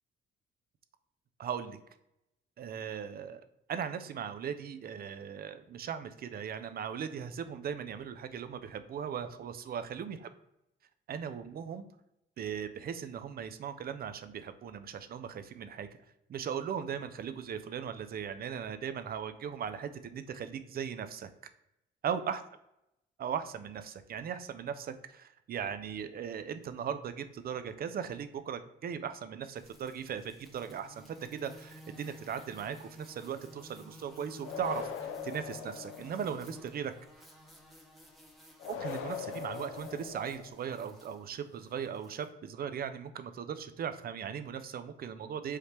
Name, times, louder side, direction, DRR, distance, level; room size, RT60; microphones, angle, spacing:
voice 1, 1.4-1.8 2.6-3.4 3.7-10.3 11.1-11.9 12.4-15.9 16.3-21.3 22.0-22.4 23.2-36.9 38.7-45.6, right 8 dB, 50° right, 11 dB, 0.4 m, -38 dB
sound 1, 29.6-42.3, equal, ahead, 0.9 m, -54 dB
sound 2, 34.4-36.5 38.6-40.7, left 7 dB, 80° left, 0.5 m, -41 dB
4.8 x 2.8 x 3.2 m, 0.86 s
cardioid pair, 90°, 20 cm